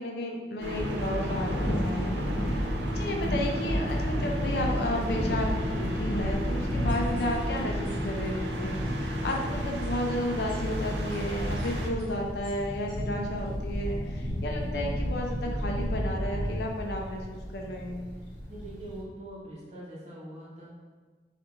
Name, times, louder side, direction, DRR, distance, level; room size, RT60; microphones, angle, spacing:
voice 1, 0.0-2.7 2.9-18.1, left 1 dB, 60° left, 0 dB, 0.4 m, -33 dB
Thunder, 0.6-19.0, equal, 85° left, 0.8 m, -32 dB
sound 1, 0.6-11.9, right 1 dB, 75° right, 0.4 m, -36 dB
sound 2, 6.9-7.4 7.8-7.9 8.2-8.6 9.3-9.4 9.8-9.9 10.5-10.6 11.1-11.2 11.6-11.7 12.0-12.1 12.4-12.5 12.9-13.0 13.4-13.5, equal, 20° left, 1.5 m, -54 dB
voice 2, 18.5-20.7, right 1 dB, 35° right, -6 dB, 0.8 m, -43 dB
4.3 x 2.4 x 2.4 m, 1.4 s
head